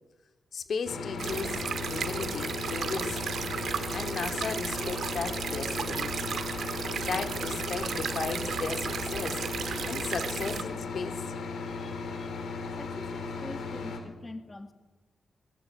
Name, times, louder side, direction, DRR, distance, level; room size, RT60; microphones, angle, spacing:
voice 1, 0.5-3.2 3.9-6.4 7.0-11.2, left 5 dB, 60° left, 7 dB, 2.3 m, -36 dB
sound 1, 0.9-14.0, left 4 dB, 90° left, 5.2 m, -36 dB
sound 2, 1.2-10.6, right 6 dB, 65° right, 2.2 m, -34 dB
voice 2, 10.4-10.7 11.6-12.4 12.8-14.7, left 2 dB, 20° left, 7 dB, 2.0 m, -44 dB
27.0 x 22.5 x 8.9 m, 1.2 s
wide cardioid pair, 145°, 0 cm